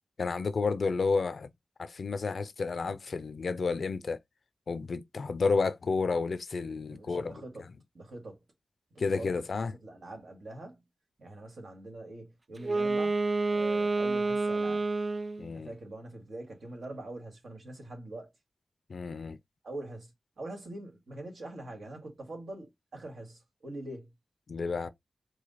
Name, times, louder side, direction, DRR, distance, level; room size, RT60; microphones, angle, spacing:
voice 1, 0.2-1.5 1.8-4.2 4.7-7.4 9.0-9.7 15.4-15.7 18.9-19.4 24.5-24.9, left 4 dB, 70° left, 0.5 m, -31 dB
voice 2, 6.9-7.6 7.9-8.4 8.9-9.3 9.8-10.8 11.2-14.9 15.5-18.3 19.6-20.1 20.4-24.1, right 2 dB, 80° right, 1.9 m, -44 dB
Wind instrument woodwind instrument, 12.6-15.5, right 3 dB, 45° right, 0.4 m, -29 dB
4.8 x 2.3 x 4.1 m
wide cardioid pair, 70°, 0 cm